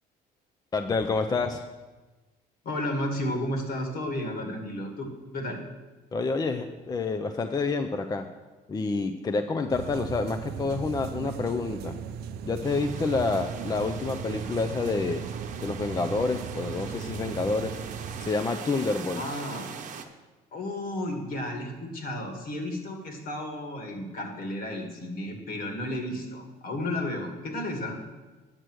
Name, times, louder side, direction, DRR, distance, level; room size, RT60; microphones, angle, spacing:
voice 1, 0.7-1.6 6.1-8.3 8.7-12.0 12.4-15.2 15.6-17.8 18.2-19.2, left 3 dB, 25° left, 6 dB, 0.5 m, -28 dB
voice 2, 2.6-5.6 19.2-19.7 20.5-28.0, left 1 dB, 60° left, 4 dB, 2.1 m, -33 dB
sound 1, 9.7-18.3, right 7 dB, 70° right, 0.5 m, -37 dB
sound 2, 12.6-20.1, right 6 dB, 50° right, 0.9 m, -41 dB
8.9 x 6.6 x 6.2 m, 1.2 s
cardioid pair, 110°, 17 cm